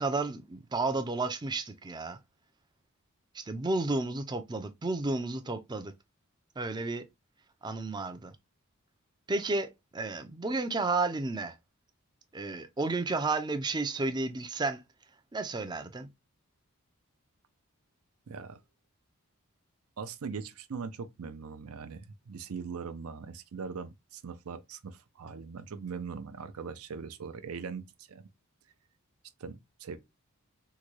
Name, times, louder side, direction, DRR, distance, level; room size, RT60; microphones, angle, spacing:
voice 1, 0.0-2.2 3.3-5.9 6.6-7.0 7.6-8.4 9.3-11.6 12.3-14.8 15.3-16.1, right 3 dB, 20° right, 0.4 m, -32 dB
voice 2, 18.3-18.6 20.0-27.8 28.1-28.2 29.4-30.0, right 5 dB, 70° right, 0.5 m, -40 dB
3.7 x 2.2 x 3.1 m
head